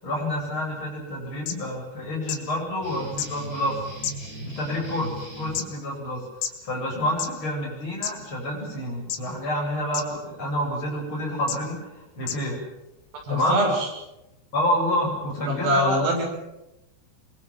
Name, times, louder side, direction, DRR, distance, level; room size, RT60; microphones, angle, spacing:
voice 1, 0.0-3.8 4.4-6.3 6.6-12.6 13.3-13.6 14.5-16.0, left 1 dB, 25° left, -2 dB, 8.8 m, -28 dB
sound 1, 1.1-1.2 1.5-1.6 2.3-2.4 3.2-3.3 4.0-4.5 5.2-5.6 6.4-6.5 7.1-7.3 8.0-8.1 9.1-9.4 9.9-10.0 10.8-10.9 11.5-11.6 12.2-12.4 13.2-13.3, left 9 dB, 70° left, 3.9 m, -29 dB
sound 2, 2.8-5.6, right 2 dB, 15° right, 8.2 m, -37 dB
voice 2, 13.2-13.9 15.5-16.3, equal, 70° right, 1 dB, 8.6 m, -23 dB
24.5 x 23.0 x 7.7 m, 0.95 s
omnidirectional pair, 5.1 m